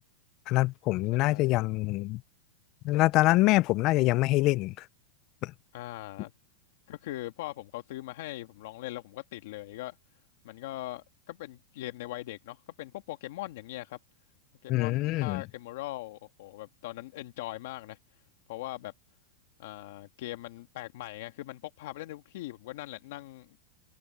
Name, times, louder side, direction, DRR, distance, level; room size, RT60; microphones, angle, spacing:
voice 1, 0.5-2.2 2.8-4.8 5.4-5.5 14.7-15.4, left 19 dB, 40° left, 0.4 m, -25 dB
voice 2, 1.1-1.6 5.7-6.3 6.9-10.0 10.4-14.0 14.6-18.0 18.5-18.9 19.6-23.6, left 16 dB, 65° left, 1.5 m, -40 dB
supercardioid pair, 150°, 0 cm